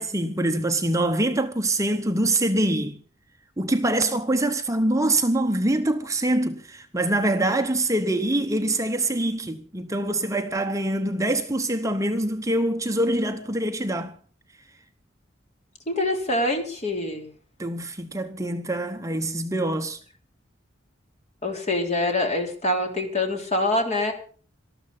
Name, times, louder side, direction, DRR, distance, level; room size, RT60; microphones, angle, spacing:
voice 1, 0.0-3.0 3.6-14.2 17.6-20.0, right 1 dB, 15° right, 0.9 m, -24 dB
voice 2, 15.9-17.3 21.4-24.1, left 1 dB, 35° left, 3.7 m, -25 dB
19.0 x 13.5 x 5.5 m
head